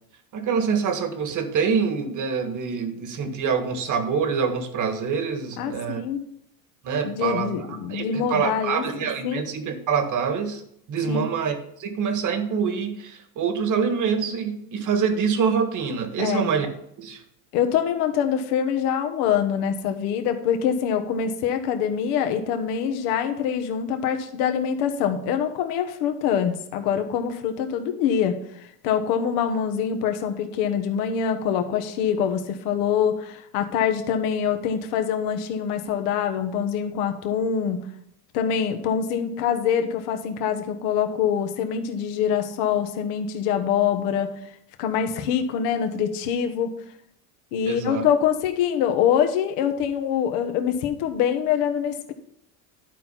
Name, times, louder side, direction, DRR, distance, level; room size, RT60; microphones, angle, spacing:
voice 1, 0.3-6.0 6.8-7.5 7.9-10.6 10.9-16.7 17.0-17.2 47.7-48.0, right 6 dB, 40° right, 8 dB, 1.6 m, -25 dB
voice 2, 5.6-6.2 7.0-8.8 9.2-9.5 11.1-11.3 16.2-16.5 17.5-28.4 28.8-37.9 38.3-44.3 44.8-46.7 47.5-52.1, left 8 dB, 70° left, 6 dB, 1.4 m, -24 dB
11.5 x 4.5 x 5.7 m, 0.73 s
supercardioid pair, 105°, 47 cm